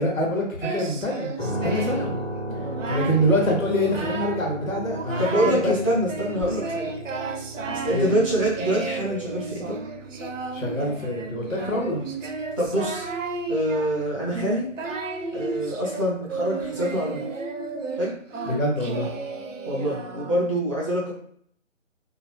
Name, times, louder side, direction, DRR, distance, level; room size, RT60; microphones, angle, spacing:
voice 1, 0.0-2.2 2.9-5.7 7.9-8.1 10.5-12.0 18.5-19.1, equal, 90° left, -1 dB, 1.1 m, -25 dB
Singing, 0.6-2.1 2.5-3.3 3.6-4.5 4.8-5.7 6.1-20.6, right 4 dB, 70° right, 0.5 m, -33 dB
sound 1, 1.4-15.4, right 1 dB, 50° left, 1.0 m, -37 dB
voice 2, 5.2-6.9 7.8-9.8 12.6-13.1 13.5-14.7 15.3-17.2 17.9-18.1 19.7-21.1, equal, 25° left, -5 dB, 0.5 m, -25 dB
2.7 x 2.3 x 2.8 m, 0.62 s
figure-of-eight pair, 150°, 39 cm